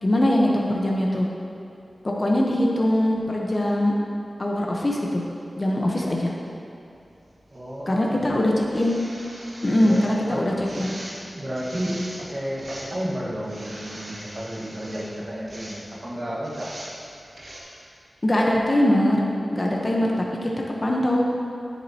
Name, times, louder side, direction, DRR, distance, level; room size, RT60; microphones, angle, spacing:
voice 1, 0.0-1.3 2.0-3.9 4.4-5.2 5.6-6.3 7.9-9.0 9.6-10.9 18.2-19.2 19.5-20.1 20.4-20.5 20.8-21.2, left 1 dB, 35° left, -2 dB, 0.9 m, -22 dB
voice 2, 7.5-8.4 9.8-10.6 11.3-16.7, equal, 40° right, -5 dB, 1.6 m, -32 dB
sound 1, 7.5-7.6 8.6-10.1 10.6-11.2 11.5-12.3 12.6-13.0 13.4-15.1 15.5-15.8 16.4-16.9 17.4-17.6, right 1 dB, 55° right, 1.4 m, -41 dB
10.0 x 7.3 x 2.9 m, 2.6 s
wide cardioid pair, 85°, 0 cm